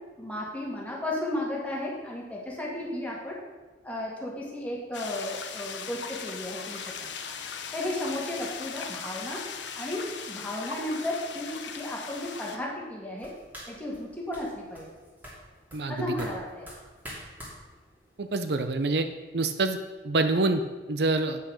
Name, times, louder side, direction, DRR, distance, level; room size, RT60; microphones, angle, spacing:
voice 1, 0.2-3.4 3.8-7.1 7.7-9.4 9.8-13.3 13.7-14.9 15.9-16.7, left 1 dB, 10° left, -4 dB, 2.0 m, -34 dB
sound 1, 4.9-12.6, left 6 dB, 90° left, 0.9 m, -39 dB
sound 2, 13.2-19.0, equal, 10° right, 2.7 m, -47 dB
voice 2, 15.7-16.1 18.2-19.1 19.3-19.8 20.0-20.6 20.9-21.4, right 3 dB, 65° right, 8 dB, 0.6 m, -26 dB
8.3 x 6.4 x 6.4 m, 1.3 s
head